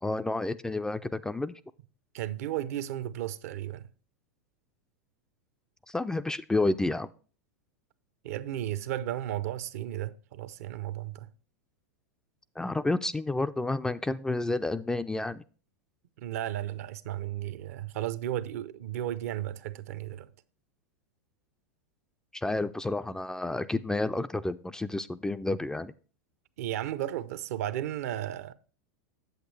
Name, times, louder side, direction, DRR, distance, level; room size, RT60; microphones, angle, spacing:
voice 1, 0.0-1.6 5.9-7.1 12.6-15.4 22.3-25.9, left 2 dB, 5° left, 0.3 m, -30 dB
voice 2, 2.1-3.9 8.2-11.3 16.2-20.3 26.6-28.5, right 12 dB, 65° right, 0.6 m, -34 dB
8.0 x 8.0 x 3.2 m
hypercardioid pair, 95°, 9 cm